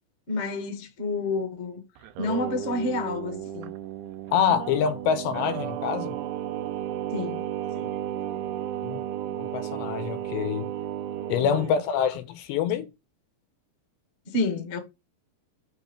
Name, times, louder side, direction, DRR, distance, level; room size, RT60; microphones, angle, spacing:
voice 1, 0.3-1.8 2.2-3.7 7.1-7.4 7.7-7.9 11.4-11.6 14.2-14.8, left 2 dB, 30° left, 1.2 m, -29 dB
Singing, 2.0-11.7, right 11 dB, 85° right, 3.2 m, -33 dB
voice 2, 4.3-6.1 8.8-9.0 9.4-10.7 11.3-12.9, left 8 dB, 75° left, 3.1 m, -26 dB
9.6 x 3.9 x 5.8 m
omnidirectional pair, 5.2 m